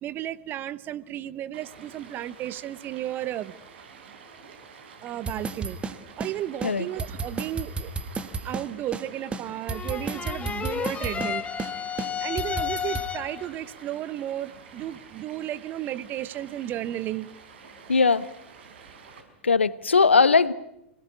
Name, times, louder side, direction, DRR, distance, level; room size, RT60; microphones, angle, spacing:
voice 1, 0.0-3.6 5.0-5.8 6.2-7.9 8.4-11.4 12.2-17.3, right 12 dB, 35° right, 16 dB, 1.1 m, -33 dB
Stream, 1.5-19.2, right 6 dB, 60° right, 5.5 m, -48 dB
sound 1, 5.3-6.3 6.6-6.7 7.0-8.7 8.9-9.0 9.3-11.3 11.6-11.7 12.0-13.1, right 4 dB, 15° right, 1.6 m, -32 dB
sound 2, 9.7-13.5, left 8 dB, 20° left, 1.3 m, -32 dB
voice 2, 17.9-18.3 19.4-20.5, left 4 dB, 80° left, 16 dB, 1.0 m, -19 dB
26.0 x 18.5 x 9.9 m, 0.85 s
figure-of-eight pair, 95°, 6 cm